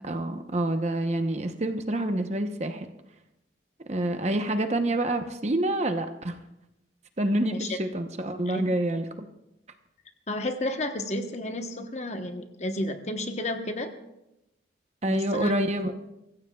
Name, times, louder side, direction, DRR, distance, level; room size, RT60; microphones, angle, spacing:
voice 1, 0.0-2.9 3.9-6.4 7.2-9.3 15.0-15.9, right 1 dB, 35° right, 6 dB, 0.9 m, -27 dB
voice 2, 7.4-7.8 8.5-8.7 10.3-13.9 15.1-15.5, left 1 dB, 40° left, 6 dB, 1.0 m, -32 dB
24.5 x 15.0 x 2.3 m, 0.89 s
head